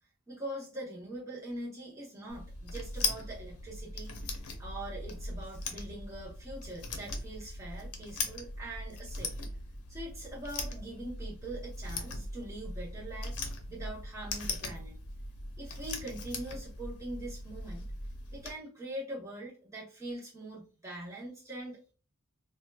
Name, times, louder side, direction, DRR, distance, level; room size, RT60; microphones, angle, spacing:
voice 1, 0.3-9.4 9.9-15.0 15.6-17.9 18.3-21.9, right 1 dB, 15° right, -6 dB, 0.7 m, -43 dB
sound 1, 2.3-18.5, left 3 dB, 75° left, 0.7 m, -39 dB
4.4 x 2.2 x 2.2 m, 0.37 s
head